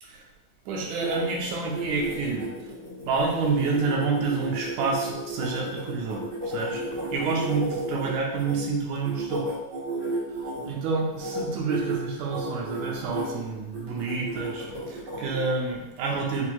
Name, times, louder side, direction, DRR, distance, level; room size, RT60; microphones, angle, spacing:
sound 1, 0.7-8.5 9.0-10.7 11.1-11.4 11.7-12.0 12.3-13.3 13.7-15.5, right 2 dB, 55° right, 0.8 m, -33 dB
voice 1, 0.7-2.5 3.1-9.5 10.4-16.5, right 4 dB, 80° right, -1 dB, 2.1 m, -28 dB
6.3 x 2.9 x 2.3 m, 1.0 s
omnidirectional pair, 3.5 m